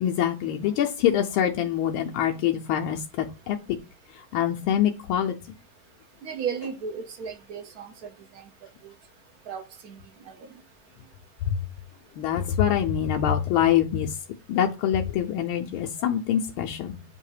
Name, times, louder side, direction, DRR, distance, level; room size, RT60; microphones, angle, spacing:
voice 1, 0.0-3.6 4.3-5.3 11.5-11.6 12.2-14.1 14.5-17.0, left 10 dB, 85° left, 1.4 m, -25 dB
voice 2, 6.2-8.4 8.8-8.9 9.5-10.0 10.3-10.5, right 6 dB, 60° right, 1.1 m, -35 dB
8.1 x 2.8 x 4.8 m
omnidirectional pair, 2.2 m